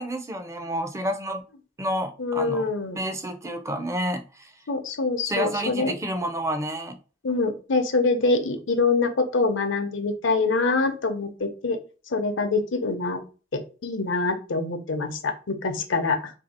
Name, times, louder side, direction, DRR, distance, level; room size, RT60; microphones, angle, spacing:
voice 1, 0.0-1.4 1.8-2.7 2.9-4.5 5.2-7.0, equal, 15° right, 0.4 m, -29 dB
voice 2, 2.2-3.0 4.7-5.9 7.2-11.8 12.1-13.2 13.5-16.3, left 3 dB, 90° left, 0.7 m, -25 dB
2.7 x 2.7 x 4.2 m
head